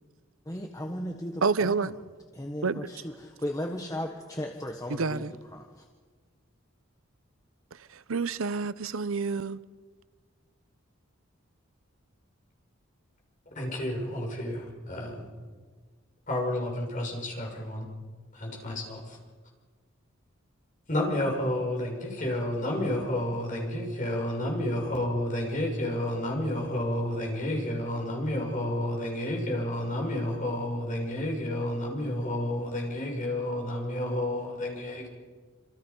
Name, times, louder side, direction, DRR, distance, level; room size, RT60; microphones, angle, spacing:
voice 1, 0.5-1.8 2.3-5.2 5.5-5.7, left 1 dB, 15° left, 1.3 m, -36 dB
voice 2, 1.4-2.0 2.6-2.9 4.9-5.3 7.7-9.6, right 4 dB, 85° right, 0.7 m, -29 dB
voice 3, 13.5-15.3 16.3-17.9 18.3-19.2 20.9-35.1, left 1 dB, 40° left, 6.5 m, -30 dB
27.5 x 27.0 x 5.5 m
head